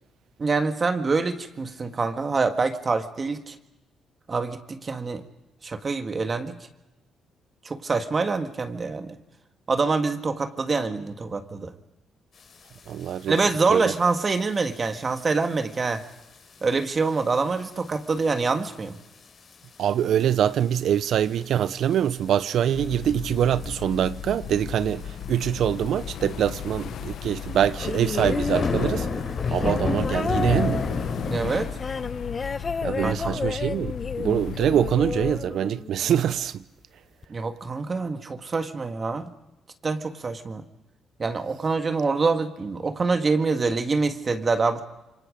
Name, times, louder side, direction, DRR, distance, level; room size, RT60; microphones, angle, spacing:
voice 1, 0.4-3.6 4.3-5.2 5.6-6.6 7.6-9.2 9.7-11.7 13.3-16.0 16.6-19.0 31.3-31.7 33.0-33.4 37.3-39.3 39.8-40.6 41.2-44.8, right 4 dB, 35° right, 1.8 m, -25 dB
voice 2, 12.9-13.4 13.7-13.8 19.8-29.1 29.5-30.8 32.8-36.6, right 9 dB, 70° right, 0.7 m, -24 dB
sound 1, 13.0-13.1 13.4-13.7 14.4-14.6 15.2-15.3 15.9-16.0 16.4-16.5 16.7-16.8 17.9-18.1 18.5-18.6 19.5-19.6 20.2-20.6 21.0-21.1 21.7-22.3 23.4-23.7 24.0-24.1 24.4-24.5 24.7-24.8 25.4-25.5 25.9-26.0 26.5-31.7, left 4 dB, 50° left, 4.3 m, -29 dB
sound 2, 22.7-35.4, left 9 dB, 70° left, 0.9 m, -36 dB
sound 3, 27.8-36.2 37.2-37.3, left 4 dB, 35° left, 0.9 m, -31 dB
27.0 x 24.0 x 5.1 m
cardioid pair, 90°, 0 cm